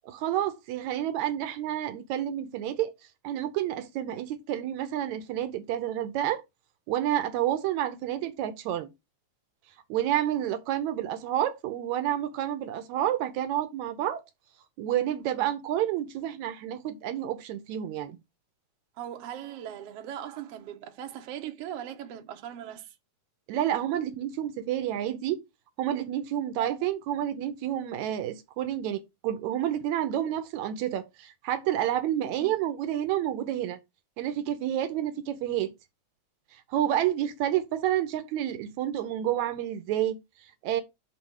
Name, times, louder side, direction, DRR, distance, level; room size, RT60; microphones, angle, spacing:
voice 1, 0.0-2.9 3.2-6.4 6.9-8.9 9.9-14.2 14.8-18.2 23.5-25.4 25.8-33.8 34.2-35.7 36.5-40.8, right 11 dB, 80° right, 2.0 m, -29 dB
voice 2, 19.0-22.9 32.4-32.5, right 10 dB, 65° right, 1.9 m, -39 dB
6.0 x 4.2 x 6.3 m
omnidirectional pair, 3.3 m